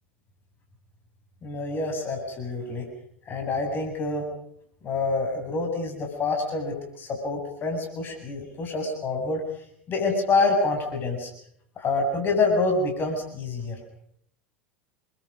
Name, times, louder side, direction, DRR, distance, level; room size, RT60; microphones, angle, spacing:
voice 1, 1.4-2.9 3.3-4.2 4.8-9.4 9.9-11.3 11.8-13.8, left 3 dB, 30° left, 3 dB, 7.7 m, -27 dB
29.5 x 23.5 x 5.4 m, 0.68 s
figure-of-eight pair, 80°, 6 cm